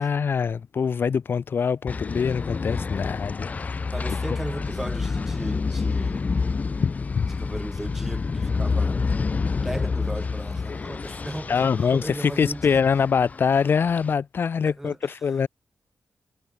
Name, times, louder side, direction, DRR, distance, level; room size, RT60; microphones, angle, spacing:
voice 1, 0.0-3.8 7.2-7.3 11.5-15.5, left 6 dB, 50° left, 2.2 m, -24 dB
sound 1, 1.9-14.1, left 4 dB, 30° left, 2.7 m, -28 dB
voice 2, 3.9-6.3 7.2-9.0 9.6-12.8 14.6-15.4, right 1 dB, 5° right, 2.6 m, -36 dB
wide cardioid pair, 180°, 5 cm